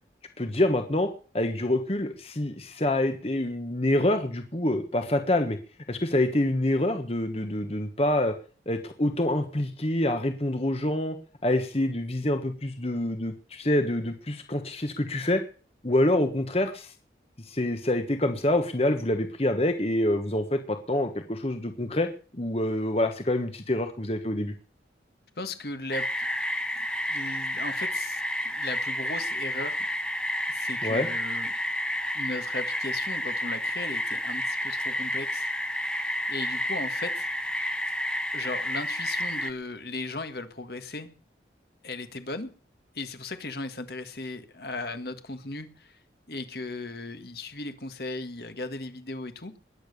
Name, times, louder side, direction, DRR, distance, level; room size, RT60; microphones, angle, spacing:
voice 1, 0.4-5.6 5.9-8.3 8.7-11.2 11.4-15.4 15.8-16.9 17.4-22.1 22.3-24.5 30.8-31.1, left 1 dB, 35° left, 7 dB, 1.4 m, -26 dB
voice 2, 25.4-26.3 26.8-29.9 30.5-31.5 32.1-35.5 36.3-37.3 38.3-41.1 41.8-42.5 43.0-46.0 46.3-49.5, left 2 dB, 55° left, 9 dB, 1.7 m, -37 dB
sound 1, 25.9-39.5, equal, 5° left, 1.1 m, -30 dB
21.0 x 9.0 x 6.7 m, 0.40 s
head